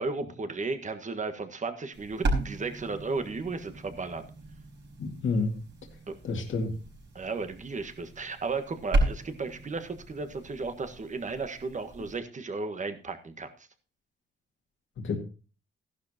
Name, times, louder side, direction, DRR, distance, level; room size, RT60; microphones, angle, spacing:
voice 1, 0.0-4.2 6.1-6.2 7.1-13.5, right 4 dB, 35° right, 8 dB, 1.6 m, -34 dB
sound 1, 1.9-12.2, right 2 dB, 60° right, 5.0 m, -35 dB
voice 2, 5.0-5.6 6.2-6.7 15.0-15.2, left 3 dB, 65° left, 3 dB, 2.2 m, -29 dB
15.0 x 11.5 x 2.9 m, 0.35 s
cardioid pair, 95°, 21 cm